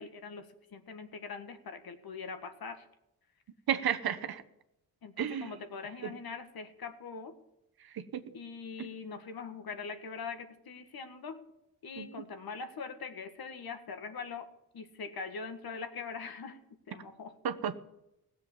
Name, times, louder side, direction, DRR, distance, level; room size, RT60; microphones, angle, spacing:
voice 1, 0.0-2.9 5.0-7.3 8.3-11.4 11.8-14.5 14.7-16.6 16.9-17.3, left 5 dB, 75° left, 8 dB, 1.7 m, -42 dB
voice 2, 3.7-4.4 5.2-5.5 6.0-6.1 7.9-8.2 8.8-8.9 12.0-12.1 17.4-17.8, right 9 dB, 75° right, 10 dB, 1.1 m, -32 dB
17.0 x 7.5 x 7.3 m, 0.87 s
cardioid pair, 70°, 37 cm